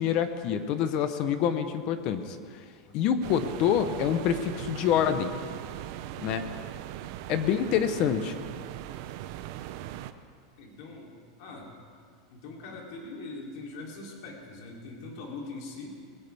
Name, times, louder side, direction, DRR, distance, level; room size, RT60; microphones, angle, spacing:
voice 1, 0.0-2.4 2.9-5.3 6.2-6.4 7.3-8.3, left 8 dB, 35° left, 10 dB, 0.7 m, -26 dB
sound 1, 3.2-10.1, right 13 dB, 45° right, 0.6 m, -39 dB
voice 2, 10.6-11.7 12.3-16.0, left 3 dB, 50° left, -1 dB, 3.1 m, -42 dB
20.0 x 17.0 x 3.4 m, 2.1 s
supercardioid pair, 175°, 2 cm